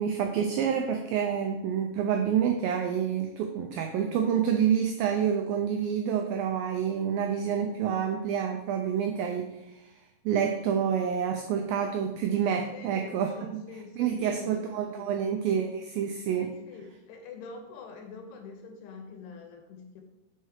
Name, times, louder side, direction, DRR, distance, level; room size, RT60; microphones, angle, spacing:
voice 1, 0.0-10.0 10.3-13.5 14.0-16.5, right 8 dB, 85° right, 4 dB, 2.1 m, -28 dB
voice 2, 12.7-15.1 16.4-20.0, left 5 dB, 90° left, 4 dB, 3.1 m, -45 dB
6.2 x 5.5 x 4.8 m, 0.93 s
omnidirectional pair, 4.7 m